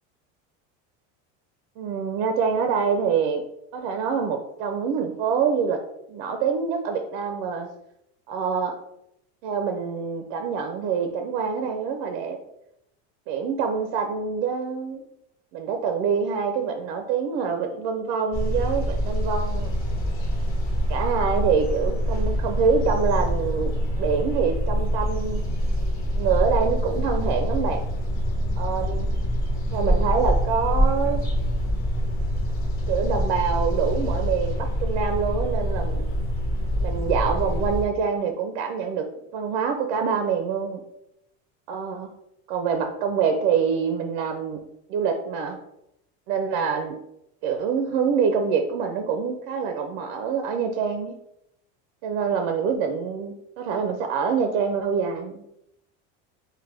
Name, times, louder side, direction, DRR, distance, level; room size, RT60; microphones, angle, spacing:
voice 1, 1.8-3.4 3.7-5.8 6.1-7.7 8.3-8.8 9.4-12.4 13.3-15.0 15.5-19.7 20.9-23.7 24.0-25.4 26.2-27.8 28.6-29.1 29.7-31.2 32.9-36.0 36.8-39.1 39.3-40.8 41.7-42.1 42.5-44.6 44.9-45.6 46.3-46.9 47.4-51.2 52.0-55.4, right 6 dB, 60° right, 5 dB, 0.5 m, -25 dB
sound 1, 18.3-37.8, equal, 40° left, 1.2 m, -25 dB
4.9 x 2.2 x 3.2 m, 0.81 s
cardioid pair, 155°, 34 cm